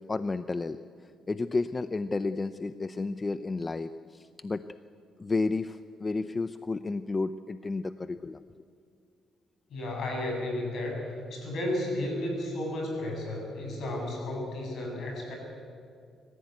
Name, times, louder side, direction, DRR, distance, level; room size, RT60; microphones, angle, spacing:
voice 1, 0.1-0.8 1.3-4.6 5.2-8.4, left 3 dB, 25° left, 12 dB, 0.6 m, -31 dB
voice 2, 9.7-15.3, left 1 dB, 65° left, 1 dB, 7.9 m, -33 dB
25.0 x 15.0 x 9.4 m, 2.3 s
cardioid pair, 90°, 0 cm